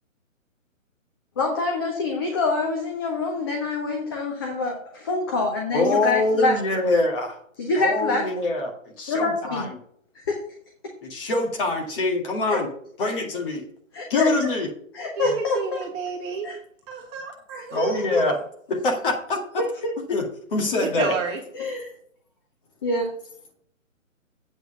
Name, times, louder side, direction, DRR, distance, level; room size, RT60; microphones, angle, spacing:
voice 1, 1.4-6.6 7.6-8.2 9.1-9.7 10.3-10.4 12.5-12.6 13.0-13.2 13.9-14.3 14.9-15.9 16.4-16.6 17.5-18.2 19.6-19.9 21.5-21.9 22.8-23.1, left 3 dB, 15° left, 2 dB, 0.6 m, -26 dB
voice 2, 5.7-7.4 7.8-9.7 11.0-12.7 13.0-13.6 14.1-14.7 17.7-18.4 18.7-19.6 20.1-21.1, left 2 dB, 40° left, 2 dB, 2.0 m, -24 dB
voice 3, 15.2-16.5 16.9-17.9 21.0-21.4, right 5 dB, 20° right, 0 dB, 1.5 m, -30 dB
8.1 x 4.6 x 6.8 m, 0.64 s
figure-of-eight pair, 140°, 41 cm